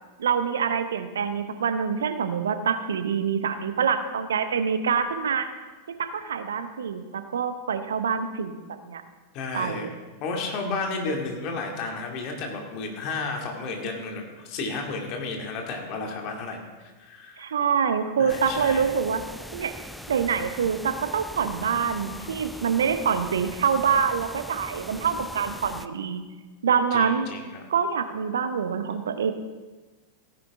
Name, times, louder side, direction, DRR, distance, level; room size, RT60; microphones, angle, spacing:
voice 1, 0.2-5.5 5.9-8.5 8.9-9.0 9.5-9.9 17.4-19.2 19.5-19.8 20.1-26.2 26.6-27.3 27.7-29.3, right 6 dB, 65° right, 10 dB, 0.8 m, -25 dB
voice 2, 9.3-9.9 10.2-17.5 18.2-18.8 26.9-27.6, left 3 dB, 40° left, 1 dB, 2.3 m, -32 dB
sound 1, 18.3-25.9, equal, ahead, 0.5 m, -41 dB
16.0 x 9.9 x 3.6 m, 1.3 s
figure-of-eight pair, 90°, 0 cm